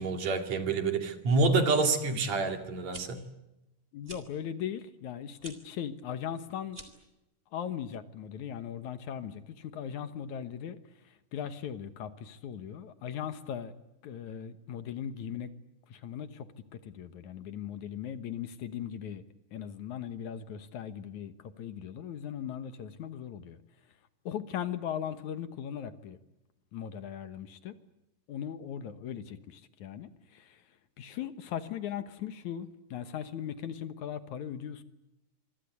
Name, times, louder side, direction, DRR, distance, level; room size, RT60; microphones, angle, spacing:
voice 1, 0.0-3.2, right 3 dB, 55° right, 7 dB, 3.5 m, -27 dB
sound 1, 2.9-3.0 4.0-4.2 5.4-5.6 6.7-7.1, right 2 dB, 15° right, 3.3 m, -46 dB
voice 2, 3.9-6.8 7.5-10.8 11.0-13.7 14.0-15.5 15.9-19.2 19.5-23.6 24.3-26.2 26.7-27.8 28.3-30.6 31.0-34.8, left 9 dB, 65° left, 11 dB, 2.5 m, -39 dB
26.0 x 24.5 x 8.2 m, 0.93 s
omnidirectional pair, 3.9 m